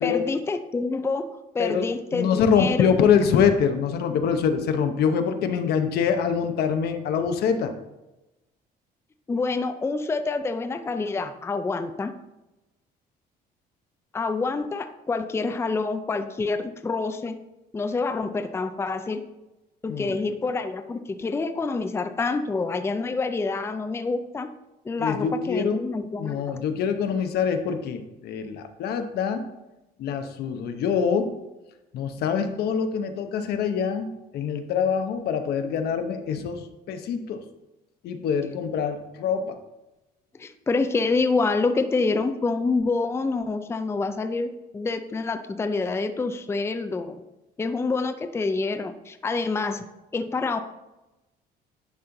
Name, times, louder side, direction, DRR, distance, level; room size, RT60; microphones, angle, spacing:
voice 1, 0.0-1.3 1.5-2.9 9.3-12.1 14.1-17.4 17.7-19.2 19.8-24.5 24.8-26.4 40.3-47.2 47.6-49.8 50.1-50.6, left 3 dB, 15° left, 8 dB, 0.4 m, -27 dB
voice 2, 1.6-7.7 19.9-20.2 25.0-25.7 26.2-29.4 30.0-31.3 31.9-34.1 34.3-36.6 36.9-37.4 38.0-39.5, left 7 dB, 70° left, 7 dB, 0.8 m, -24 dB
10.5 x 4.4 x 3.8 m, 1.0 s
cardioid pair, 110°, 17 cm